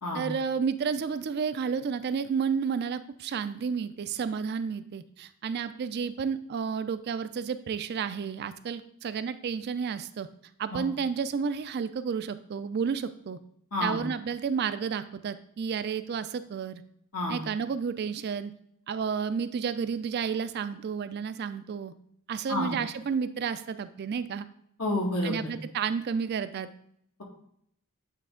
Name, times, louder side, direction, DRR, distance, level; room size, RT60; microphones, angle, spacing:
voice 1, 0.1-10.3 10.6-13.4 13.8-16.8 17.3-18.5 18.9-21.9 22.3-24.5 25.2-26.7, right 6 dB, 50° right, 12 dB, 0.3 m, -31 dB
voice 2, 24.8-25.5, left 1 dB, 80° left, -2 dB, 1.8 m, -29 dB
8.4 x 3.3 x 3.7 m, 0.68 s
head